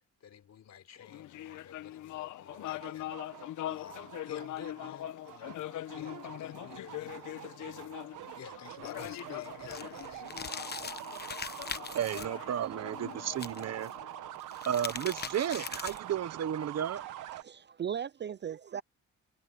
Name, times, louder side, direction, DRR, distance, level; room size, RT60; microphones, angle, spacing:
voice 1, 0.2-7.2 7.5-8.0 8.3-10.5, left 9 dB, 60° left, 4.2 m, -52 dB
sound 1, 1.0-14.7, left 14 dB, 80° left, 1.1 m, -42 dB
sound 2, 2.5-17.4, right 14 dB, 85° right, 1.3 m, -45 dB
sound 3, 8.8-12.3 13.3-13.9 14.4-16.1, left 6 dB, 35° left, 1.0 m, -41 dB
voice 2, 11.9-13.9 14.6-17.0, right 9 dB, 60° right, 1.3 m, -33 dB
voice 3, 17.3-18.8, right 8 dB, 35° right, 0.5 m, -37 dB
cardioid pair, 90°, 30 cm